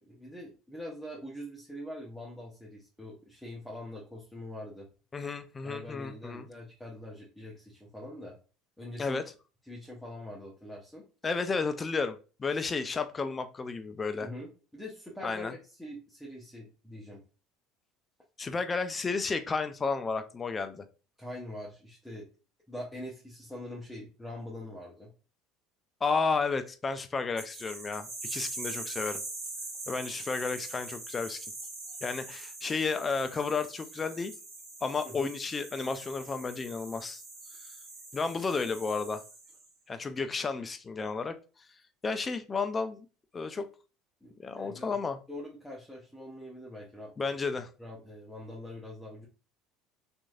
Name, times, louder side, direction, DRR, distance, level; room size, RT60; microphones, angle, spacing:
voice 1, 0.1-4.9 5.6-8.3 8.8-9.2 9.6-11.0 14.2-17.2 21.2-22.3 22.7-25.1 35.0-35.3 44.2-44.9 45.3-47.1 47.8-49.3, left 1 dB, 5° left, -4 dB, 0.8 m, -44 dB
voice 2, 5.1-6.5 9.0-9.2 11.2-14.3 15.2-15.5 18.4-20.8 26.0-29.2 29.9-31.4 32.0-34.3 34.8-37.2 38.1-39.2 39.9-41.3 42.0-43.1 43.3-43.7 44.4-45.2 47.2-47.7, left 4 dB, 30° left, 10 dB, 0.4 m, -32 dB
sound 1, 27.4-39.7, right 3 dB, 65° right, 1.2 m, -43 dB
3.0 x 2.5 x 2.3 m, 0.35 s
hypercardioid pair, 75°, 0 cm